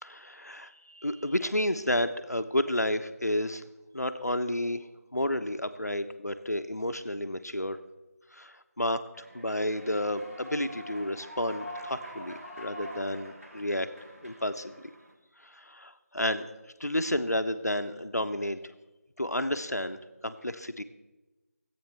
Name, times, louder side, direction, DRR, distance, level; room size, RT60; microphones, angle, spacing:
voice 1, 0.0-3.7 3.9-7.8 8.3-13.9 14.2-14.9 15.4-16.4 16.8-18.6 19.2-20.8, left 1 dB, 90° left, 9 dB, 1.0 m, -31 dB
Human voice / Clapping / Cheering, 9.1-15.1, equal, 60° right, 3.1 m, -45 dB
26.0 x 8.7 x 3.5 m, 1.1 s
figure-of-eight pair, 165°, 9 cm